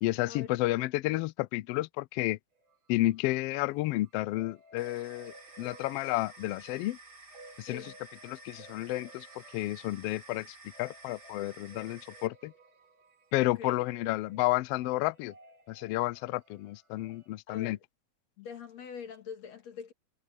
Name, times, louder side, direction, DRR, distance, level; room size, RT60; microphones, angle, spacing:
voice 1, 0.0-2.4 2.9-7.0 7.6-7.8 8.2-9.3 9.5-12.5 13.3-15.3 15.7-17.8, left 18 dB, 90° left, 1.3 m, -31 dB
sound 1, 2.6-3.7 4.0-17.3, right 2 dB, 65° right, 4.8 m, -57 dB
sound 2, 4.8-12.3, right 2 dB, 30° right, 3.7 m, -52 dB
voice 2, 13.4-13.8 17.5-17.8 18.4-19.9, left 7 dB, 65° left, 3.6 m, -44 dB
omnidirectional pair, 3.3 m